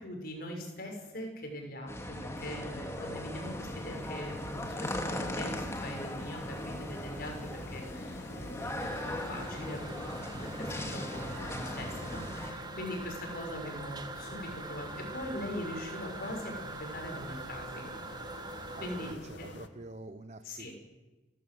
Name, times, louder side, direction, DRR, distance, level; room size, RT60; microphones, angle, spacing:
voice 1, 0.0-1.9 2.4-3.5 3.9-4.6 5.1-5.5 5.8-6.4 6.6-7.3 7.7-7.8 8.4-8.7 9.3-9.8 10.4-10.5 10.8-12.2 12.8-14.9 15.1-16.4 16.9-17.8 18.8-19.1 20.5-20.7, left 1 dB, 55° left, 2 dB, 6.6 m, -40 dB
sound 1, 1.9-12.5, left 1 dB, 15° left, 2.5 m, -38 dB
sound 2, 2.2-19.7, left 2 dB, 85° left, 1.7 m, -49 dB
Toilet flush, 8.8-19.1, right 3 dB, 25° right, 1.3 m, -44 dB
voice 2, 18.7-20.7, right 2 dB, 40° right, 10 dB, 0.9 m, -47 dB
30.0 x 14.0 x 8.0 m, 1.2 s
head